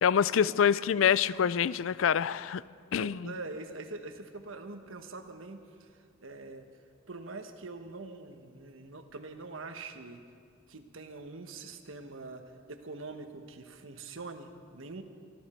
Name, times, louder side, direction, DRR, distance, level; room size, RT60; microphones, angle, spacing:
voice 1, 0.0-2.6 2.9-3.3, left 8 dB, 80° left, 18 dB, 0.4 m, -26 dB
voice 2, 3.0-6.7 7.1-10.2 10.7-15.0, right 3 dB, 85° right, 7 dB, 1.2 m, -44 dB
24.5 x 13.5 x 4.4 m, 2.2 s
head